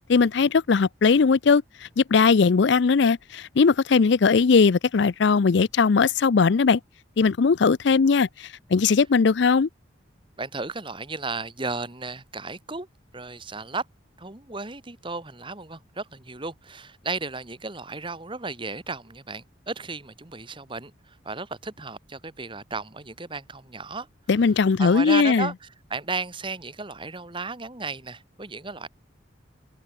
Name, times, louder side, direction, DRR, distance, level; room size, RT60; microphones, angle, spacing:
voice 1, 0.1-6.8 7.2-9.7 24.3-25.5, left 5 dB, 60° left, 0.5 m, -19 dB
voice 2, 10.4-12.9 13.1-13.8 14.2-24.1 24.8-25.5 25.9-28.9, right 3 dB, 25° right, 1.8 m, -34 dB
head